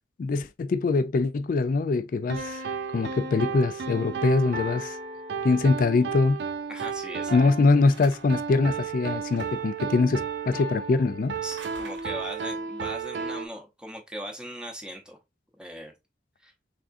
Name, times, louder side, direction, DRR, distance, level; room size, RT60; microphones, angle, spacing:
voice 1, 0.2-2.6 2.9-5.0 5.4-6.4 7.3-11.3, left 3 dB, 45° left, 0.3 m, -23 dB
sound 1, 2.3-6.1 7.3-8.9 10.5-12.1, left 1 dB, 45° right, 0.8 m, -41 dB
sound 2, 2.3-13.5, right 6 dB, 60° right, 0.4 m, -34 dB
voice 2, 6.7-7.5 11.4-15.2 15.6-15.9 16.4-16.5, equal, 5° right, 0.7 m, -39 dB
sound 3, 7.9-8.5 9.3-9.8 11.3-12.5, right 3 dB, 80° right, 1.0 m, -47 dB
3.6 x 3.5 x 2.5 m
head